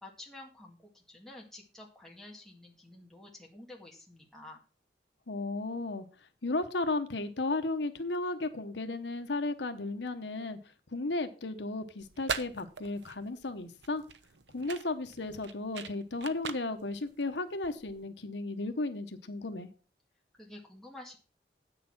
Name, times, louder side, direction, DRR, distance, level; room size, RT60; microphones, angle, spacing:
voice 1, 0.0-4.6 20.4-21.2, left 2 dB, ahead, -2 dB, 1.9 m, -50 dB
voice 2, 5.3-6.0 6.4-10.6 10.9-14.0 14.5-19.7, left 2 dB, 85° left, 8 dB, 1.0 m, -34 dB
sound 1, 12.0-18.0, right 6 dB, 85° right, 0.8 m, -42 dB
8.6 x 6.8 x 5.9 m, 0.36 s
head